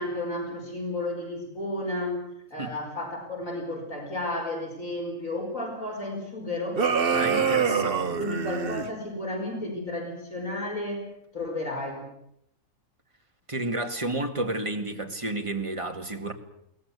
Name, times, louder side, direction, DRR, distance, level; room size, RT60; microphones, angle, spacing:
voice 1, 0.0-2.2 2.5-6.9 7.2-12.1, left 1 dB, 80° left, 5.8 m, -33 dB
sound 1, 6.7-8.9, right 6 dB, 45° right, 1.3 m, -25 dB
voice 2, 7.1-8.1 13.5-16.3, right 2 dB, 25° right, 2.2 m, -31 dB
22.5 x 18.5 x 8.3 m
omnidirectional pair, 1.4 m